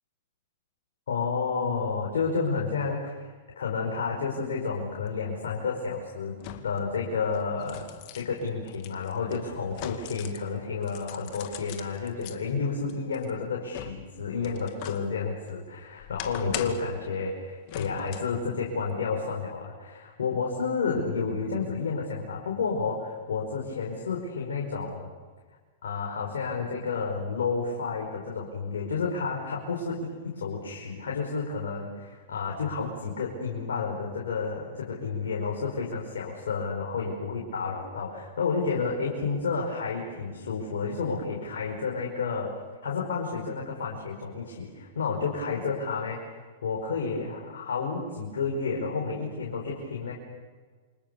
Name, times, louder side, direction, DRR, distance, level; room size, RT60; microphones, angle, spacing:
voice 1, 1.1-6.4 6.6-7.9 8.1-25.1 25.8-30.1 30.3-46.2 46.6-50.1, left 5 dB, 75° left, -2 dB, 5.1 m, -31 dB
sound 1, 5.1-5.2 6.4-6.9 7.3-10.5 10.8-12.4 12.9-15.1 15.5-17.0 17.7-18.4 18.8-18.9, left 13 dB, 50° left, 2.3 m, -41 dB
28.0 x 26.0 x 7.0 m, 1.5 s
hypercardioid pair, 110°, 0 cm